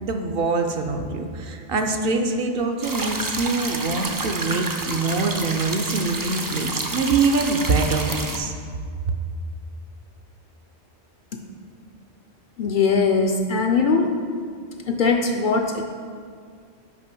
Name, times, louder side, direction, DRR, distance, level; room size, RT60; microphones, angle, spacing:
voice 1, 0.0-8.5, right 3 dB, 60° right, 5 dB, 0.8 m, -24 dB
sound 1, 2.8-8.4, right 2 dB, 30° right, 0.4 m, -29 dB
voice 2, 12.6-14.2 14.9-15.8, left 4 dB, 60° left, 4 dB, 0.6 m, -20 dB
6.1 x 5.0 x 6.0 m, 2.1 s
omnidirectional pair, 1.1 m